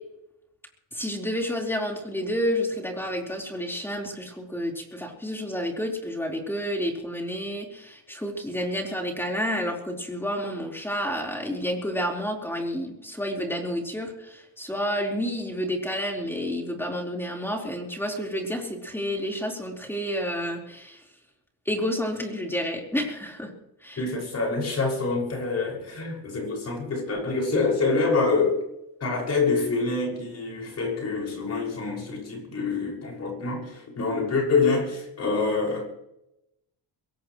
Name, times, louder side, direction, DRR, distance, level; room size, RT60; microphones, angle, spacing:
voice 1, 0.9-21.0 21.7-23.5 23.8-24.0, equal, 5° left, 0 dB, 4.4 m, -30 dB
voice 2, 24.0-28.6 29.0-35.9, left 4 dB, 40° left, -1 dB, 6.2 m, -26 dB
23.0 x 17.0 x 3.2 m, 0.84 s
cardioid pair, 130°, 39 cm